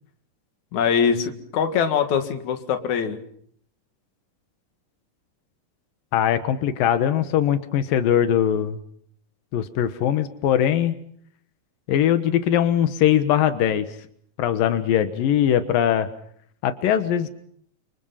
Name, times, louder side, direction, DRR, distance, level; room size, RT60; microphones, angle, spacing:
voice 1, 0.7-3.2, left 7 dB, 60° left, 7 dB, 3.2 m, -23 dB
voice 2, 6.1-8.8 9.5-11.0 11.9-13.9 14.4-16.1 16.6-17.3, left 10 dB, 90° left, 10 dB, 3.1 m, -21 dB
29.5 x 25.5 x 5.7 m, 0.64 s
omnidirectional pair, 3.9 m